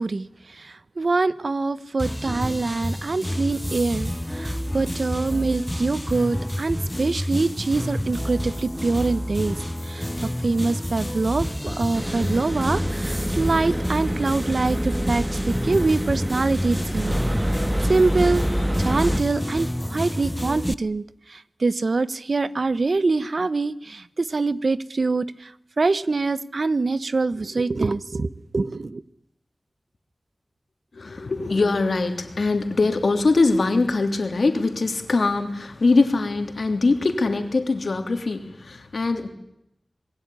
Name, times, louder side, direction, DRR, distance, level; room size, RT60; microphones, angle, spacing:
voice 1, 0.0-10.1 10.4-17.1 17.5-17.6 17.9-18.4 18.8-21.0 21.3-25.5 25.8-29.0, right 3 dB, 70° right, 16 dB, 1.1 m, -24 dB
sound 1, 2.0-20.7, equal, 10° left, 1.0 m, -29 dB
sound 2, 11.9-19.2, equal, 15° right, 2.1 m, -27 dB
voice 2, 30.9-39.3, left 3 dB, 80° left, 7 dB, 3.2 m, -22 dB
26.5 x 21.0 x 10.0 m, 0.81 s
wide cardioid pair, 60°, 0 cm